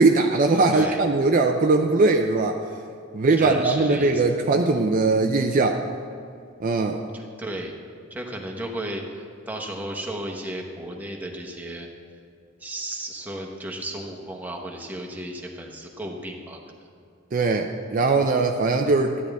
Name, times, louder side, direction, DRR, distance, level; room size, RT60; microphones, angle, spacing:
voice 1, 0.0-2.6 3.1-5.8 6.6-7.0 17.3-19.2, right 3 dB, 45° right, 3 dB, 0.5 m, -20 dB
voice 2, 3.4-4.2 7.1-7.7 8.1-11.9 12.6-16.6, right 1 dB, 10° right, 0 dB, 1.0 m, -34 dB
12.5 x 9.5 x 3.5 m, 2.4 s
head